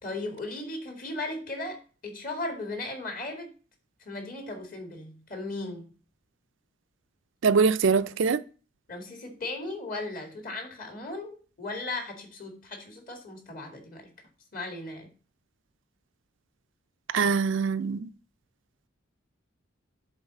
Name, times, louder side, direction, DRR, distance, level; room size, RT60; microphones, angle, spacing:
voice 1, 0.0-3.5 4.0-5.9 8.9-14.1 14.5-15.1, left 2 dB, 45° left, 2.1 m, -37 dB
voice 2, 7.4-8.4 17.1-18.1, right 5 dB, 70° right, 0.4 m, -23 dB
7.3 x 4.0 x 6.6 m
head